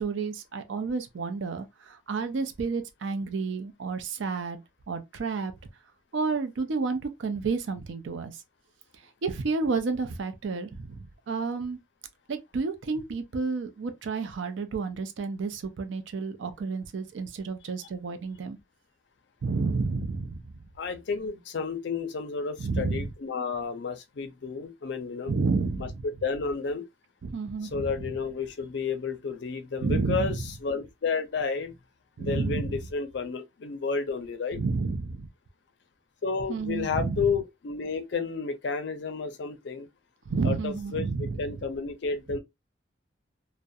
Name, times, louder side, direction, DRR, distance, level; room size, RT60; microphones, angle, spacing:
voice 1, 0.0-4.6 4.9-5.5 6.1-8.3 9.2-11.8 12.3-18.6 19.4-20.4 22.6-23.1 25.3-26.0 27.2-27.9 29.8-30.4 32.2-32.8 34.5-35.3 36.5-37.2 40.3-41.6, right 4 dB, 75° right, 0.4 m, -30 dB
voice 2, 20.8-25.3 25.8-25.9 26.2-26.8 27.7-31.7 32.2-34.6 36.2-39.9 40.4-42.4, left 5 dB, 65° left, 0.4 m, -31 dB
2.3 x 2.1 x 2.6 m
head